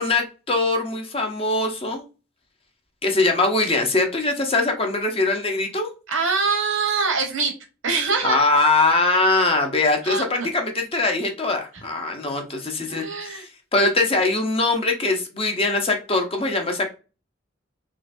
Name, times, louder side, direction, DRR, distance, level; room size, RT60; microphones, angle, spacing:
voice 1, 0.0-2.0 3.0-5.9 8.2-16.9, left 2 dB, 30° left, 3 dB, 0.8 m, -22 dB
voice 2, 6.1-7.5 7.8-8.4 10.0-10.5 12.9-13.4, right 4 dB, 80° right, 3 dB, 1.4 m, -24 dB
3.9 x 3.1 x 2.6 m, 0.31 s
head